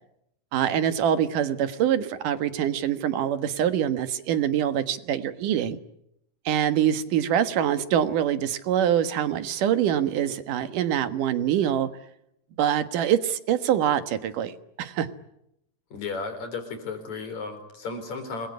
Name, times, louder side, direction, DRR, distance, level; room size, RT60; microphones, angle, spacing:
voice 1, 0.5-5.8 6.5-11.9 12.6-15.1, right 10 dB, 85° right, 10 dB, 3.1 m, -24 dB
voice 2, 15.9-18.5, left 4 dB, 60° left, 8 dB, 5.4 m, -34 dB
27.5 x 22.0 x 9.7 m, 0.81 s
omnidirectional pair, 3.6 m